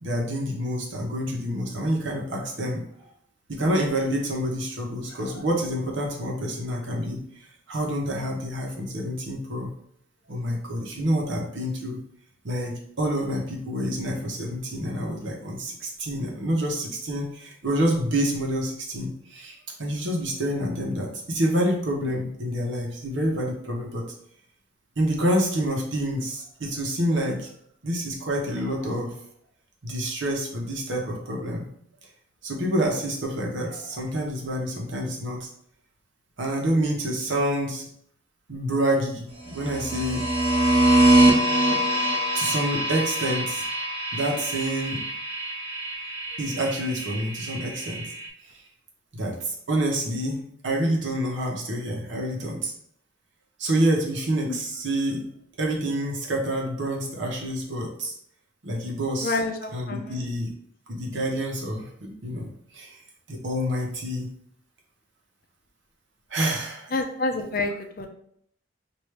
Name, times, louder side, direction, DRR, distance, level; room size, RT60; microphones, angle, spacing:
voice 1, 0.0-2.8 3.5-7.2 7.7-9.7 10.3-12.0 12.4-24.0 25.0-27.5 27.8-29.1 29.8-31.7 32.4-35.5 36.4-37.8 38.5-40.2 42.3-43.6 44.1-45.0 46.4-48.0 48.5-48.6 49.1-52.7 53.6-55.2 55.6-58.1 58.6-59.4 59.7-60.5 60.9-62.5 62.7-63.0 63.3-64.3 66.3-66.9, equal, 80° right, 0 dB, 1.0 m, -27 dB
sound 1, 39.5-48.3, right 1 dB, 30° right, 1.1 m, -24 dB
voice 2, 59.2-60.2 66.9-67.7 68.0-68.1, left 3 dB, 50° left, 5 dB, 0.5 m, -28 dB
4.9 x 2.6 x 3.3 m, 0.68 s
head